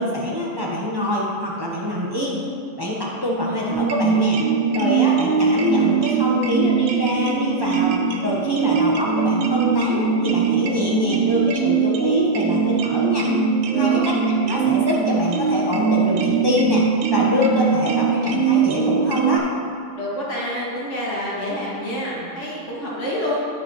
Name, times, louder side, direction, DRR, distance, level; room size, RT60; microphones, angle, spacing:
voice 1, 0.0-2.4 2.8-4.4 4.7-13.3 13.8-14.1 14.4-16.8 17.1-19.5, left 1 dB, 20° right, -5 dB, 1.1 m, -24 dB
sound 1, 3.7-19.4, right 5 dB, 90° right, 1.2 m, -21 dB
voice 2, 20.0-23.4, left 1 dB, 65° left, -7 dB, 2.6 m, -27 dB
10.0 x 9.3 x 3.2 m, 2.4 s
omnidirectional pair, 1.3 m